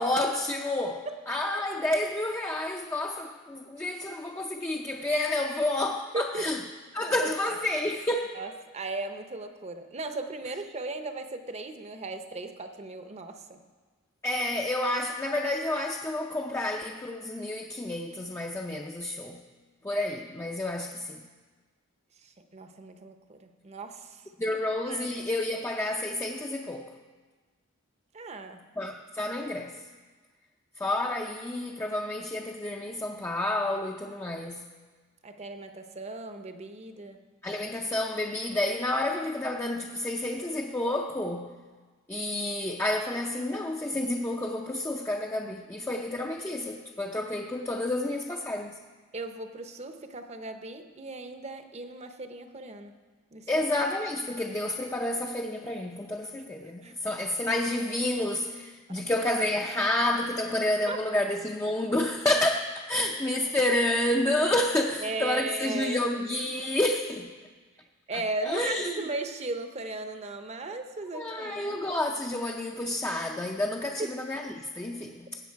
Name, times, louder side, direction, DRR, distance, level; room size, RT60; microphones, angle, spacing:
voice 1, 0.0-6.6 6.9-8.4 14.2-19.4 19.8-21.2 24.4-26.9 28.8-29.8 30.8-34.7 37.4-41.6 42.1-48.8 53.5-67.3 68.1-69.1 71.1-75.4, left 1 dB, 10° left, 1 dB, 0.4 m, -30 dB
voice 2, 7.2-7.6 8.3-13.6 22.2-24.2 24.9-25.2 28.1-28.6 35.2-37.2 49.1-52.9 53.3-53.7 56.8-56.9 59.0-59.1 60.9-61.0 65.0-66.0 68.1-71.8 74.0-74.2, right 2 dB, 30° right, 7 dB, 0.7 m, -37 dB
16.5 x 7.8 x 4.6 m, 1.4 s
head